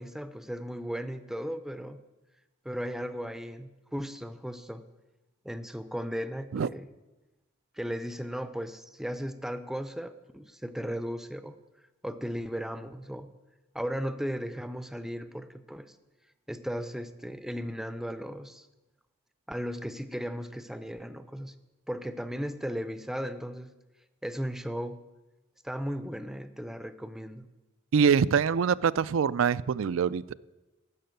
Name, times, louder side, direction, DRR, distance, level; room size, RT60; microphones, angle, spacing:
voice 1, 0.0-2.0 2.6-4.9 5.4-6.9 7.7-11.6 12.0-13.3 13.7-16.0 16.5-18.7 19.5-21.5 21.9-23.8 24.2-25.1 25.6-27.5, equal, ahead, 11 dB, 0.5 m, -36 dB
voice 2, 27.9-30.3, right 6 dB, 70° right, 18 dB, 0.4 m, -24 dB
12.0 x 6.7 x 9.1 m, 1.1 s
head